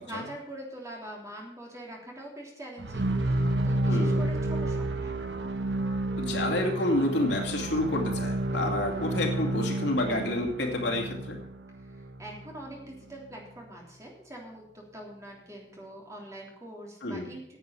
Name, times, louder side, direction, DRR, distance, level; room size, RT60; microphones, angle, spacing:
voice 1, 0.0-5.1 11.8-17.6, right 1 dB, 20° right, -1 dB, 3.3 m, -44 dB
sound 1, 2.8-12.8, right 1 dB, 75° right, 1.0 m, -30 dB
voice 2, 3.9-4.2 6.2-11.4 17.0-17.3, left 1 dB, 75° left, 1 dB, 2.5 m, -29 dB
10.0 x 8.5 x 7.0 m, 0.73 s
head